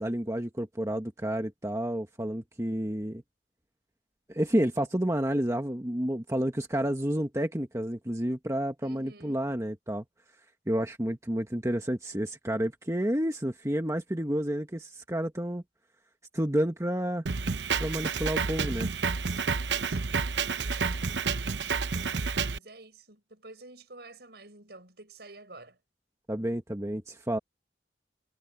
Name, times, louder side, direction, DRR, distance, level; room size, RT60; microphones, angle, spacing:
voice 1, 0.0-3.2 4.3-10.0 10.7-15.6 16.3-17.2 17.8-18.9 26.3-27.4, right 1 dB, 15° right, 1.4 m, -30 dB
voice 2, 8.8-9.5 19.8-20.3 21.9-22.2 22.5-25.8, right 2 dB, 65° right, 7.7 m, -50 dB
Drum kit, 17.3-22.6, right 5 dB, 80° right, 0.8 m, -29 dB
head